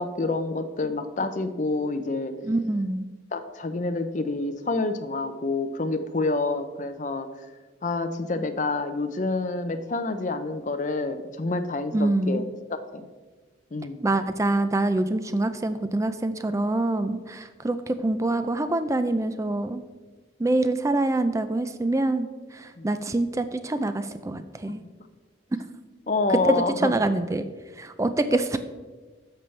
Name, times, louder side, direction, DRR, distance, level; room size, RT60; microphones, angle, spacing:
voice 1, 0.0-2.3 3.3-7.3 7.8-12.4 12.7-13.1 13.7-14.0 22.8-22.9 26.1-26.9 28.3-28.4, left 3 dB, 40° left, 8 dB, 0.6 m, -28 dB
voice 2, 2.4-3.1 11.9-12.4 14.0-19.8 20.4-24.8 26.3-27.5 27.8-28.6, right 2 dB, 15° right, 10 dB, 0.3 m, -25 dB
11.0 x 6.9 x 3.2 m, 1.3 s
head